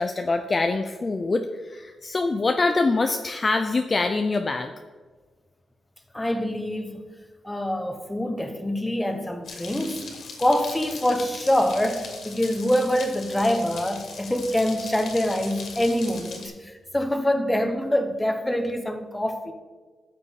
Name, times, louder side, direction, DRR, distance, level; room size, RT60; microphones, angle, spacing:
voice 1, 0.0-4.7, left 3 dB, 30° left, 0.5 m, -24 dB
voice 2, 6.1-7.0 7.4-10.1 10.4-19.5, left 1 dB, 10° left, 1.1 m, -25 dB
sound 1, 9.4-16.5, left 4 dB, 70° left, 2.6 m, -40 dB
12.5 x 7.5 x 4.2 m
cardioid pair, 110°, 0 cm